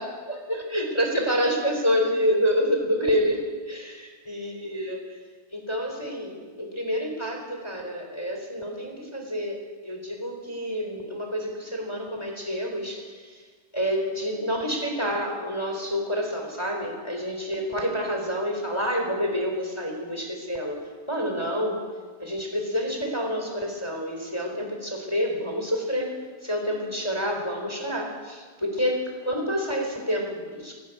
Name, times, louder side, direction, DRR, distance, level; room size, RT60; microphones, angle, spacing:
voice 1, 0.3-3.4 3.7-4.0 4.3-5.0 5.5-13.4 13.7-21.8 22.2-26.1 26.4-30.7, equal, 5° left, 2 dB, 2.6 m, -28 dB
22.0 x 13.5 x 8.9 m, 1.5 s
omnidirectional pair, 5.8 m